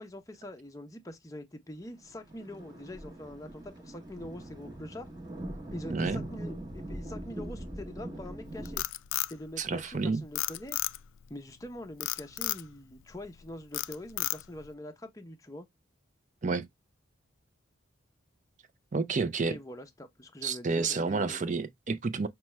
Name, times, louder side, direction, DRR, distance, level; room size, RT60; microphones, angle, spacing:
voice 1, 0.0-5.1 5.7-8.8 9.3-10.8 11.3-15.7 19.5-21.5, left 1 dB, 15° left, 0.6 m, -44 dB
Thunder, 2.0-8.8, right 1 dB, 20° right, 0.9 m, -41 dB
voice 2, 5.9-6.2 9.6-10.2 16.4-16.7 18.9-19.6 20.4-22.3, right 4 dB, 35° right, 0.4 m, -30 dB
Frog, 8.5-10.0 10.4-11.2 12.0-12.7 13.1-13.4 13.7-14.7, left 16 dB, 70° left, 0.3 m, -32 dB
5.8 x 2.2 x 3.1 m
head